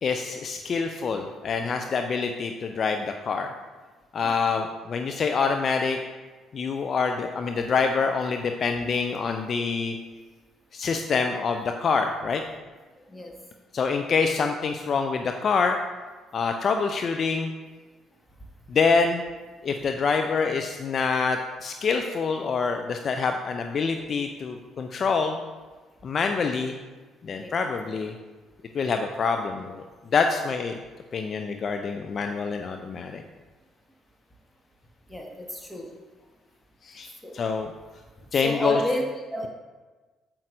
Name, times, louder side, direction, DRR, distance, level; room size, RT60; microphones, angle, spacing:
voice 1, 0.0-3.5 4.1-6.0 6.5-10.0 10.7-12.4 13.7-15.8 16.3-17.5 18.7-19.2 19.6-25.4 26.0-26.8 27.2-28.1 28.7-30.8 31.1-33.2 36.8-37.7 38.3-38.8, left 5 dB, 45° left, 5 dB, 0.4 m, -26 dB
voice 2, 35.1-35.9 37.2-37.3 38.4-39.0 39.3-39.5, equal, 10° left, 1 dB, 1.6 m, -30 dB
9.2 x 7.2 x 2.6 m, 1.3 s
figure-of-eight pair, 45°, 0 cm